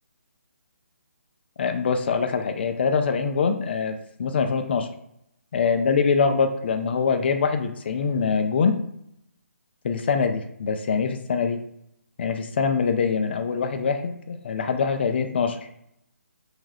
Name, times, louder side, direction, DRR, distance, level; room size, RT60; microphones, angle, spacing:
voice 1, 1.6-4.9 5.5-8.8 9.8-11.6 12.2-15.6, left 5 dB, 45° left, 6 dB, 0.4 m, -24 dB
2.7 x 2.2 x 3.2 m, 0.75 s
figure-of-eight pair, 150°, 8 cm